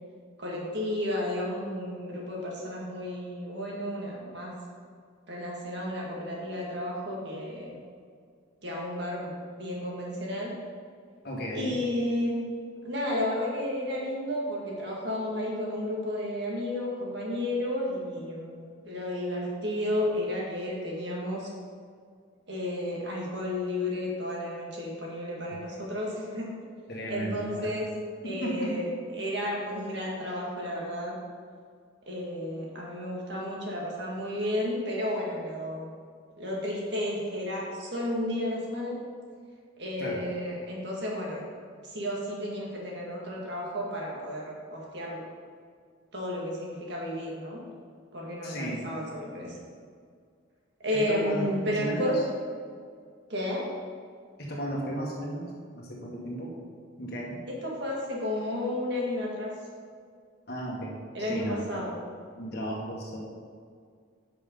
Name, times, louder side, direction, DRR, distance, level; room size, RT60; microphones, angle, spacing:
voice 1, 0.4-4.5 5.3-7.8 8.6-10.5 11.5-12.4 12.8-21.5 22.5-26.5 27.1-27.9 28.2-31.2 32.1-35.9 36.4-38.9 39.8-41.5 41.8-45.2 46.1-47.6 48.1-49.5 50.8-52.2 53.3-53.6 57.5-59.5 61.1-62.0, left 1 dB, 55° right, -3 dB, 2.0 m, -32 dB
voice 2, 11.2-11.8 26.9-27.7 28.2-28.8 40.0-40.2 48.4-48.9 50.9-52.1 54.4-56.6 57.0-57.4 60.5-61.6 62.4-63.2, right 1 dB, 50° left, -3 dB, 1.8 m, -34 dB
10.5 x 5.9 x 3.9 m, 2.1 s
head